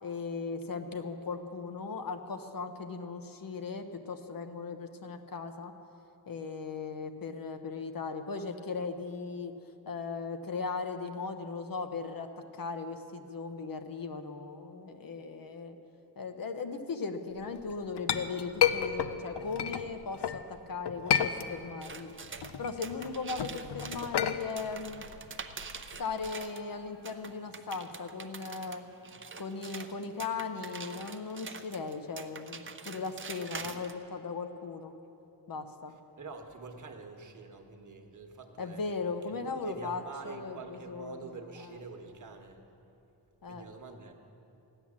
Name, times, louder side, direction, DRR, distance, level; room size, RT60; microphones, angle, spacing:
voice 1, 0.0-5.7 6.3-9.5 9.9-15.8 16.2-22.1 22.6-25.0 26.0-28.8 29.4-34.9 35.5-35.9 38.6-41.2 41.6-41.7 43.4-43.6, left 4 dB, 60° left, 7 dB, 0.9 m, -38 dB
Chink clink, 17.6-20.4 20.8-21.9 22.2-26.3, left 9 dB, 85° left, 0.7 m, -31 dB
sound 1, 21.8-26.6 27.0-33.9, right 5 dB, 30° right, 0.6 m, -45 dB
voice 2, 36.2-38.8 39.2-42.6 43.4-44.1, right 4 dB, 50° right, 4 dB, 1.2 m, -46 dB
14.5 x 10.0 x 7.3 m, 2.8 s
wide cardioid pair, 165°, 40 cm